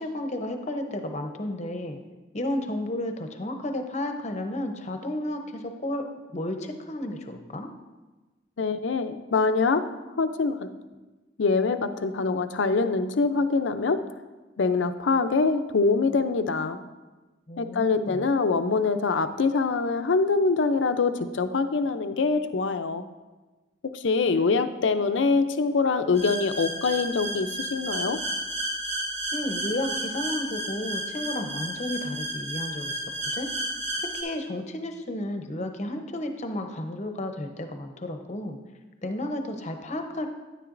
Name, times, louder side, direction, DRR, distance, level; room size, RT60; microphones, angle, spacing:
voice 1, 0.0-2.0 2.3-6.1 6.3-7.7 17.5-18.3 29.3-33.0 33.3-33.5 34.1-38.6 39.0-40.3, left 1 dB, 35° left, 5 dB, 0.7 m, -32 dB
voice 2, 8.6-9.8 10.2-10.7 11.4-14.0 14.6-16.8 17.6-23.0 23.9-28.2, left 4 dB, 75° left, 10 dB, 0.5 m, -24 dB
sound 1, 26.1-34.2, right 1 dB, 35° right, 2.0 m, -32 dB
10.0 x 9.9 x 2.6 m, 1.2 s
head